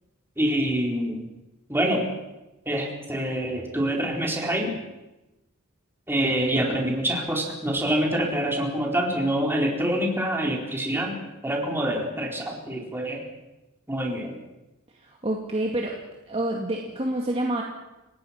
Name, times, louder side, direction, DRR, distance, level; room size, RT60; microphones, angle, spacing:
voice 1, 0.4-1.2 1.7-2.0 2.7-4.8 6.1-11.1 11.4-13.2 13.9-14.4, right 1 dB, 10° right, -1 dB, 4.2 m, -26 dB
voice 2, 15.0-15.9 16.3-17.6, right 1 dB, 25° right, 0 dB, 2.3 m, -27 dB
30.0 x 17.5 x 5.9 m, 1.0 s
head